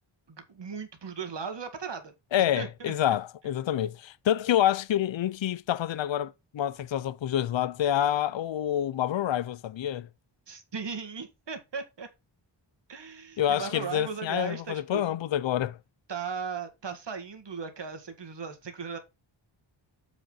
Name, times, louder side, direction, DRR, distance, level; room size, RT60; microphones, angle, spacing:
voice 1, 0.3-2.1 2.5-2.9 10.5-12.1 12.9-15.1 16.1-19.0, right 5 dB, 60° right, 1.9 m, -37 dB
voice 2, 2.3-10.1 13.4-15.8, left 11 dB, 65° left, 0.6 m, -27 dB
7.4 x 5.5 x 5.5 m
wide cardioid pair, 135°, 48 cm